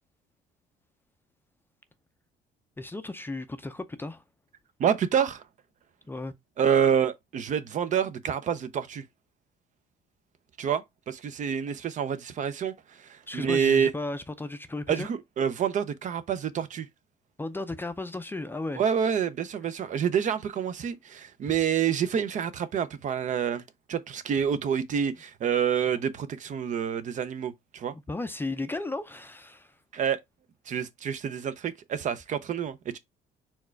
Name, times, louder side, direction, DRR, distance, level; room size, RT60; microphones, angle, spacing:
voice 1, 2.8-4.2 6.1-6.3 13.3-15.1 17.4-18.8 28.1-29.7, left 2 dB, 10° left, 0.5 m, -35 dB
voice 2, 4.8-5.4 6.6-9.0 10.6-13.9 14.9-16.9 18.7-23.6 23.9-27.9 29.9-30.2 30.7-33.0, right 8 dB, 45° right, 0.6 m, -27 dB
4.5 x 2.3 x 4.4 m
cardioid pair, 110°, 17 cm